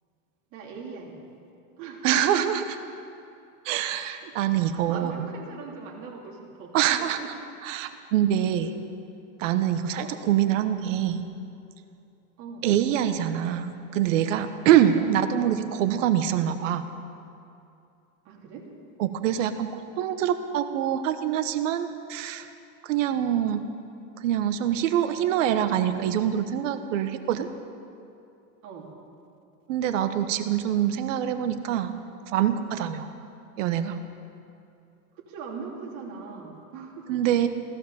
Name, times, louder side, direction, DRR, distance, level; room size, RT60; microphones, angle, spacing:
voice 1, 0.5-1.2 1.8-2.0 2.4-2.5 4.2-4.4 4.7-7.3 10.0-10.2 12.4-12.7 14.9-15.2 18.2-18.7 28.6-28.9 35.3-37.1, right 5 dB, 45° right, -1 dB, 3.1 m, -40 dB
voice 2, 2.0-2.6 3.6-5.3 6.7-7.2 7.6-8.7 9.4-11.2 12.6-16.9 19.0-22.5 22.8-23.6 24.2-27.5 29.7-32.0 32.3-33.1 33.6-34.0 37.1-37.5, right 10 dB, 65° right, 10 dB, 1.2 m, -25 dB
16.5 x 12.5 x 7.0 m, 2.6 s
supercardioid pair, 160°, 41 cm